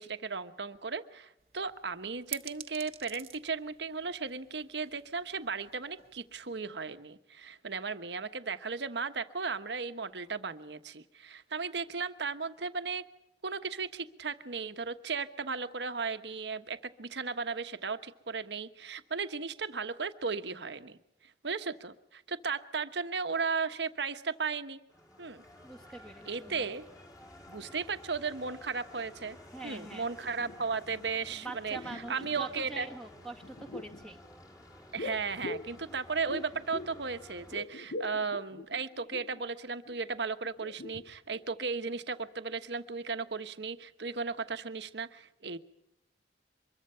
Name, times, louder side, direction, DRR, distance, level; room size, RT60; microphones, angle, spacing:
voice 1, 0.0-13.0 13.4-24.8 25.2-25.4 26.3-26.8 27.5-29.4 29.6-32.9 34.9-45.6, right 5 dB, 75° right, 9 dB, 1.2 m, -36 dB
sound 1, 1.4-6.6, right 11 dB, 35° right, 1.3 m, -49 dB
sound 2, 24.9-37.6, left 1 dB, 20° left, 4.3 m, -53 dB
voice 2, 25.6-26.7 29.5-30.1 31.3-34.2, right 3 dB, 5° left, 3 dB, 1.8 m, -44 dB
sound 3, 29.9-30.0 30.3-31.1 31.4-32.6 33.4-34.1 35.0-37.1 37.3-39.4 39.9-40.0 40.4-41.4 41.7-41.8, left 2 dB, 65° left, 0.8 m, -43 dB
24.5 x 22.0 x 5.7 m, 0.84 s
head